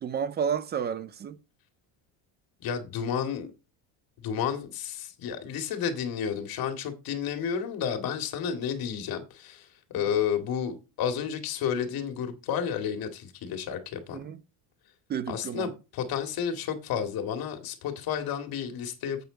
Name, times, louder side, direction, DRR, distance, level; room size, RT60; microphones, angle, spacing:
voice 1, 0.0-1.4 14.1-14.4 15.1-15.7, right 7 dB, 25° right, 0.4 m, -31 dB
voice 2, 2.6-3.5 4.2-14.2 15.3-19.2, left 8 dB, 50° left, 2.1 m, -31 dB
9.2 x 8.2 x 3.9 m
cardioid pair, 155°, 47 cm